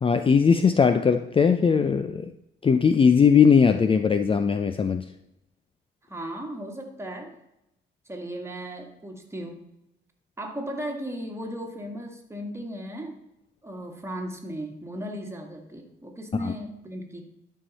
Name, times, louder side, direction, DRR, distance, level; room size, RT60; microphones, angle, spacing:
voice 1, 0.0-2.3 2.6-5.0 16.4-16.5, left 6 dB, 25° left, 9 dB, 0.5 m, -19 dB
voice 2, 6.1-7.4 8.1-9.6 10.4-13.2 13.6-17.2, right 1 dB, 15° right, 2 dB, 2.0 m, -36 dB
12.0 x 5.7 x 4.1 m, 0.86 s
cardioid pair, 90°, 20 cm